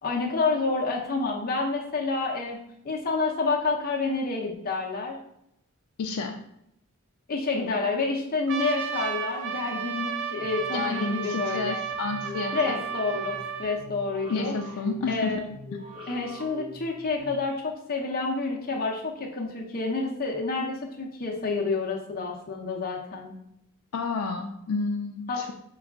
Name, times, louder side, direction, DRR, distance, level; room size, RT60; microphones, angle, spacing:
voice 1, 0.0-2.6 2.8-5.2 7.3-11.8 12.5-14.5 15.1-15.4 16.1-23.3 25.3-25.5, left 3 dB, 45° left, -1 dB, 0.7 m, -29 dB
voice 2, 6.0-6.4 10.7-12.8 14.3-15.4 23.9-25.5, left 4 dB, 80° left, 3 dB, 0.4 m, -30 dB
Trumpet, 8.5-13.8, right 7 dB, 60° right, 0.4 m, -33 dB
sound 1, 10.4-17.3, equal, 25° right, 0.9 m, -42 dB
4.7 x 2.4 x 3.5 m, 0.76 s
head